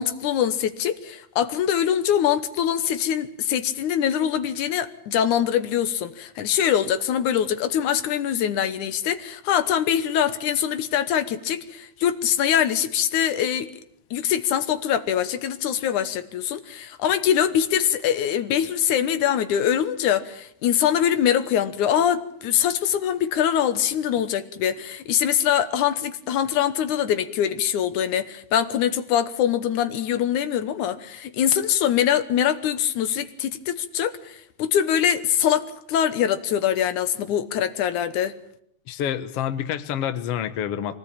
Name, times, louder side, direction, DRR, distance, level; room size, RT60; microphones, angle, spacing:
voice 1, 0.0-13.7 14.1-38.3, left 9 dB, 75° left, 11 dB, 2.5 m, -23 dB
voice 2, 38.9-41.0, left 9 dB, 60° left, 11 dB, 1.9 m, -28 dB
24.0 x 18.5 x 8.8 m, 0.71 s
omnidirectional pair, 3.5 m